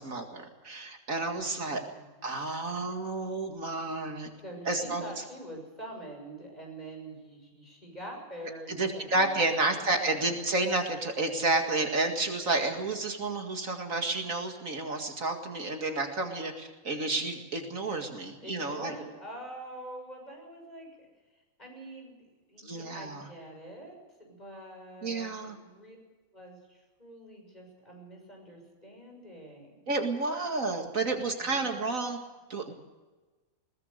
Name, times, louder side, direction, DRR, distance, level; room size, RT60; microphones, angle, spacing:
voice 1, 0.0-1.8 2.2-4.3 4.7-5.1 8.7-18.9 22.6-23.3 25.0-25.6 29.9-32.2 32.5-32.7, right 3 dB, 65° right, 4 dB, 2.5 m, -30 dB
voice 2, 1.3-2.5 4.4-10.5 18.4-26.0 26.3-29.8 31.4-31.8, right 1 dB, 30° left, 1 dB, 6.9 m, -46 dB
21.5 x 19.0 x 6.6 m, 1.2 s
omnidirectional pair, 1.5 m